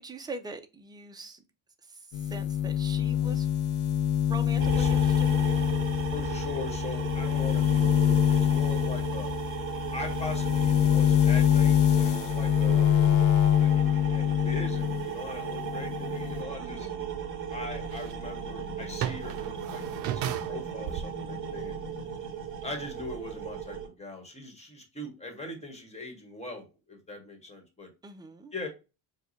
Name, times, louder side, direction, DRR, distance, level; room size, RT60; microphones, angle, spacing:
voice 1, 0.0-1.4 1.8-3.5 4.3-5.7 16.6-17.1 28.0-28.5, right 2 dB, 10° right, 0.5 m, -42 dB
sound 1, 2.1-15.1 15.4-16.4, left 10 dB, 85° left, 0.7 m, -25 dB
sound 2, 4.6-23.9, right 6 dB, 25° right, 1.8 m, -36 dB
voice 2, 6.1-9.3 9.9-12.9 13.6-16.9 17.5-19.8 20.1-21.9 22.6-27.9 28.5-28.7, left 2 dB, 15° left, 1.4 m, -41 dB
sound 3, 17.7-22.2 22.6-22.7 23.1-23.2, right 10 dB, 55° right, 0.6 m, -36 dB
4.8 x 2.4 x 4.0 m
cardioid pair, 145°, 44 cm